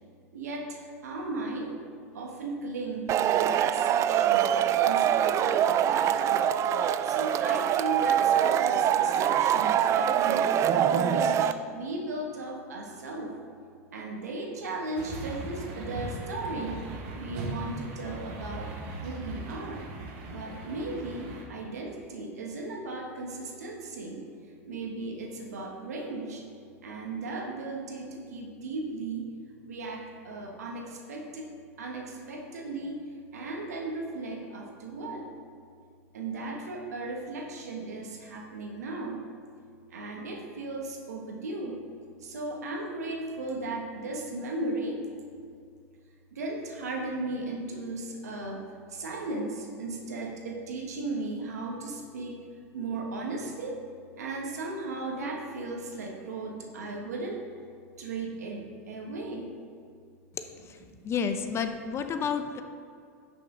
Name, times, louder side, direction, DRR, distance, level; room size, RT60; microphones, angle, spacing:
voice 1, 0.3-1.7 2.1-4.5 4.8-6.5 7.0-13.3 13.9-18.7 19.0-19.9 20.3-24.2 24.6-26.4 26.8-29.3 29.6-31.5 31.8-33.0 33.3-35.3 36.1-39.2 39.9-41.9 42.2-45.0 46.3-48.6 48.9-52.4 52.7-53.8 54.2-57.4 58.0-59.5, right 2 dB, 85° right, 1 dB, 1.4 m, -36 dB
Male speech man speaking / Shout / Clapping, 3.1-11.5, right 10 dB, 35° right, 0.4 m, -24 dB
sound 1, 15.0-21.4, right 2 dB, 55° right, 1.5 m, -39 dB
voice 2, 60.3-60.8 61.0-62.6, left 6 dB, 30° left, 8 dB, 0.7 m, -31 dB
10.5 x 6.1 x 3.8 m, 2.3 s
hypercardioid pair, 95°, 8 cm